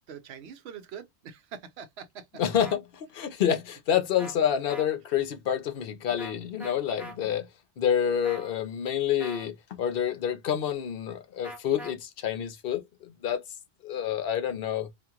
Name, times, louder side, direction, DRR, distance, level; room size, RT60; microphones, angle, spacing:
voice 1, 0.1-2.3, right 7 dB, 70° right, 0.8 m, -43 dB
voice 2, 2.4-7.5 7.8-13.4 13.8-14.9, left 9 dB, 60° left, 0.7 m, -28 dB
sound 1, 2.6-2.8 4.2-4.3 4.7-4.9 6.2-6.3 6.6-7.1 8.2-8.5 9.2-9.5 11.4-11.9, right 1 dB, ahead, 0.8 m, -41 dB
2.8 x 2.5 x 2.3 m
omnidirectional pair, 1.2 m